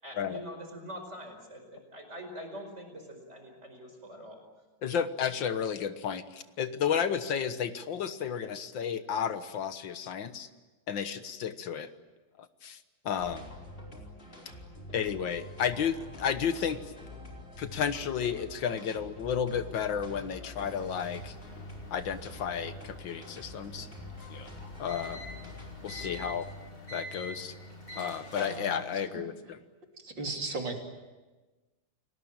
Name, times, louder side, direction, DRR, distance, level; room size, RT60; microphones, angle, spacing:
voice 1, 0.0-4.4, equal, 35° right, 4 dB, 5.4 m, -44 dB
voice 2, 4.8-10.5 10.9-11.9 12.4-12.8 13.1-13.5 14.9-16.8 17.6-21.3 21.9-23.9 24.3-24.5 24.8-25.2 25.8-26.5 26.9-27.5 28.0-29.6, left 7 dB, 75° left, 10 dB, 2.0 m, -32 dB
sound 1, 13.2-26.5, left 1 dB, 30° left, 4.5 m, -46 dB
sound 2, 20.5-29.0, equal, 45° left, 4.8 m, -46 dB
Mechanical fan, 21.8-28.4, left 3 dB, 5° right, 4.1 m, -54 dB
voice 3, 30.0-30.8, right 3 dB, 70° right, 2 dB, 3.9 m, -35 dB
29.5 x 19.5 x 9.0 m, 1.2 s
omnidirectional pair, 2.1 m